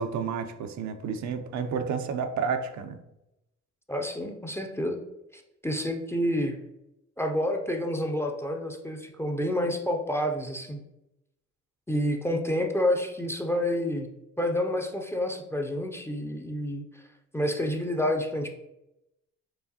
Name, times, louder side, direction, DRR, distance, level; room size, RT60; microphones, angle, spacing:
voice 1, 0.0-3.0, right 6 dB, 70° right, 0.5 m, -30 dB
voice 2, 3.9-5.0 5.3-6.6 7.2-10.8 11.9-14.1 14.4-16.8 17.3-18.5, left 1 dB, 10° left, 0.4 m, -29 dB
4.7 x 2.5 x 2.7 m
cardioid pair, 90°, 30 cm